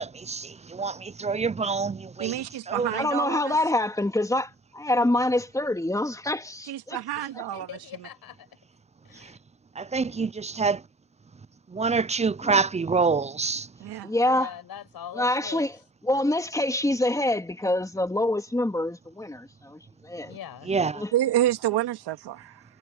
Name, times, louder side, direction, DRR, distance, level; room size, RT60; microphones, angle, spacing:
voice 1, 0.0-2.9 9.8-10.8 11.7-13.7 20.7-21.0, right 4 dB, 15° right, 0.6 m, -26 dB
voice 2, 2.2-3.5 6.7-7.7 13.8-14.2 21.1-22.6, right 13 dB, 80° right, 2.3 m, -28 dB
voice 3, 2.9-7.0 7.3-7.4 12.4-12.6 14.0-14.5 15.1-15.7 16.0-20.3 20.9-21.1, left 1 dB, 10° left, 3.2 m, -26 dB
voice 4, 7.2-8.5 9.0-9.4 14.2-15.8 20.3-20.7, left 10 dB, 65° left, 7.1 m, -42 dB
cardioid pair, 95°, 39 cm